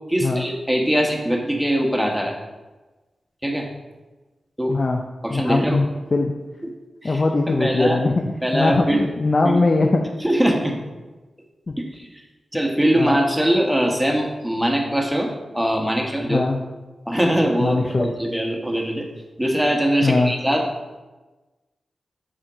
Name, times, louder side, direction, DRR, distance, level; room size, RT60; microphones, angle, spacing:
voice 1, 0.1-2.4 3.4-3.7 4.6-4.8 5.2-5.8 7.0-8.0 8.4-9.0 9.4-9.6 10.2-10.7 11.9-12.1 12.5-16.4 17.1-19.1 19.4-20.7, equal, 5° right, 1 dB, 1.3 m, -22 dB
voice 2, 4.7-5.0 5.3-6.3 7.0-10.0 11.7-11.8 13.0-13.2 16.3-16.6 17.6-18.1 20.0-20.3, left 3 dB, 40° left, 2 dB, 0.6 m, -21 dB
7.4 x 4.5 x 4.9 m, 1.2 s
cardioid pair, 70°, 0 cm